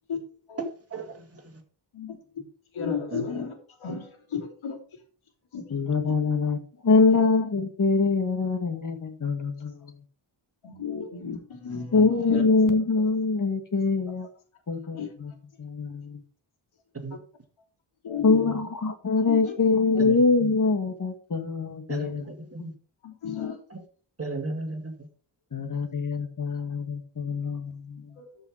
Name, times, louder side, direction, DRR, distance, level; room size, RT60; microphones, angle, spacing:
voice 1, 0.9-1.6 3.1-3.2 17.0-17.2 20.0-20.5 21.9-22.7 23.7-23.8 24.2-24.9, right 3 dB, 30° right, 5 dB, 2.1 m, -35 dB
voice 2, 1.9-2.4 2.7-3.5 3.8-4.8 5.5-5.6 7.1-7.2 10.6-12.0 12.3-12.4 15.0-15.1 17.1-17.2 18.0-18.6 19.3-19.4 20.0-20.1 23.0-23.6 28.2-28.4, left 6 dB, 90° left, 1 dB, 3.1 m, -33 dB
voice 3, 5.7-10.0 11.9-14.3 14.7-15.3 15.6-16.2 18.2-22.3 22.6-22.7 25.5-28.2, left 4 dB, 40° left, 7 dB, 1.9 m, -24 dB
13.5 x 5.7 x 4.6 m, 0.41 s
wide cardioid pair, 120°, 47 cm